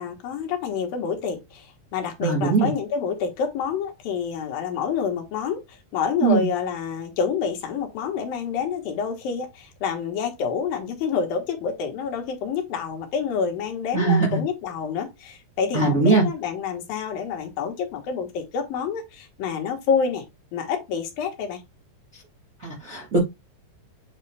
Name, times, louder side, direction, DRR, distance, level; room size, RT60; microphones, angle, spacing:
voice 1, 0.0-20.2 20.5-21.6, left 6 dB, 85° left, 3.3 m, -28 dB
voice 2, 2.2-2.7 6.2-6.5 13.9-14.4 15.7-16.2 22.6-23.2, right 4 dB, 45° right, 1.0 m, -20 dB
8.3 x 3.8 x 3.4 m
omnidirectional pair, 4.0 m